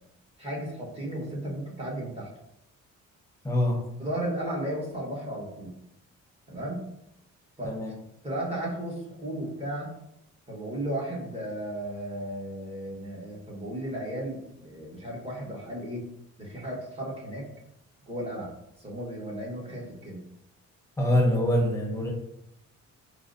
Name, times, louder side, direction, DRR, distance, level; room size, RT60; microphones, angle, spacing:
voice 1, 0.4-2.3 4.0-5.7 6.5-6.8 7.6-7.8 8.2-9.9 10.5-16.0 16.4-17.5 18.1-20.2, right 1 dB, 20° right, -4 dB, 1.2 m, -34 dB
voice 2, 3.4-3.9 7.6-7.9 21.0-22.1, left 1 dB, 10° left, 0 dB, 0.8 m, -24 dB
4.7 x 2.0 x 2.6 m, 0.80 s
cardioid pair, 90°, 30 cm